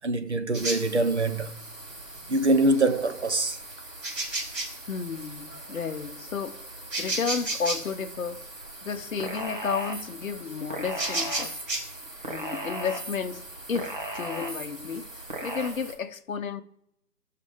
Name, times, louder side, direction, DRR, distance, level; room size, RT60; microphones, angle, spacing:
voice 1, 0.0-1.6 2.3-3.6, right 2 dB, 45° right, 0.7 m, -24 dB
sound 1, 0.5-15.9, right 2 dB, 80° right, 4.8 m, -37 dB
voice 2, 4.9-6.6 7.0-8.4 8.8-11.6 12.3-13.4 13.7-16.6, left 6 dB, 55° left, 0.8 m, -32 dB
sound 2, 9.2-10.0 10.7-11.6 12.2-13.1 13.7-14.7 15.3-15.7, right 1 dB, 30° right, 1.2 m, -35 dB
15.5 x 6.6 x 3.5 m
figure-of-eight pair, 165°, 47 cm